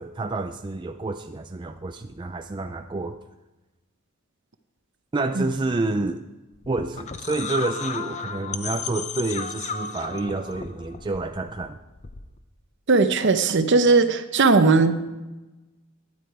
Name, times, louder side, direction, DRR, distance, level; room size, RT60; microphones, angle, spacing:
voice 1, 0.0-3.2 5.1-6.3 6.7-11.8, right 2 dB, 20° right, 6 dB, 0.4 m, -29 dB
sound 1, 6.5-12.4, left 6 dB, 30° left, 0.6 m, -34 dB
voice 2, 12.9-15.0, right 3 dB, 55° right, 10 dB, 0.7 m, -18 dB
12.5 x 9.9 x 4.7 m, 1.1 s
head